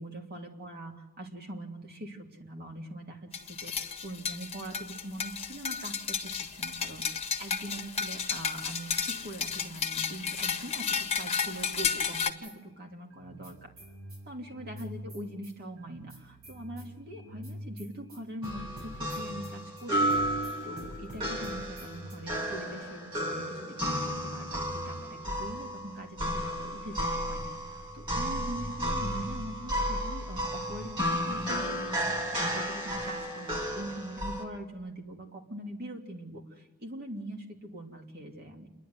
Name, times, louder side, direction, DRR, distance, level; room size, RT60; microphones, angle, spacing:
voice 1, 0.0-13.7 14.3-38.7, right 1 dB, 45° right, 2 dB, 2.9 m, -43 dB
sound 1, 3.3-12.3, left 6 dB, 30° left, 1.4 m, -33 dB
sound 2, 9.1-10.6 11.1-12.7 13.1-22.2, equal, 80° right, 6.2 m, -46 dB
sound 3, 18.4-34.4, equal, 25° right, 3.7 m, -33 dB
28.5 x 11.5 x 9.6 m, 1.1 s
head